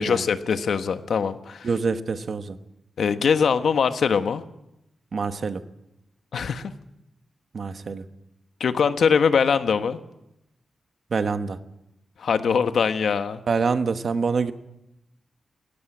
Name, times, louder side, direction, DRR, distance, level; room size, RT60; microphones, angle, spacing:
voice 1, 0.0-1.7 3.0-4.4 6.3-6.7 8.6-10.0 12.2-13.4, left 6 dB, 70° left, 9 dB, 1.2 m, -22 dB
voice 2, 1.6-2.5 5.1-5.6 7.5-8.0 11.1-11.6 13.5-14.5, right 5 dB, 55° right, 9 dB, 1.2 m, -25 dB
17.0 x 16.5 x 9.7 m, 0.88 s
wide cardioid pair, 125°, 0 cm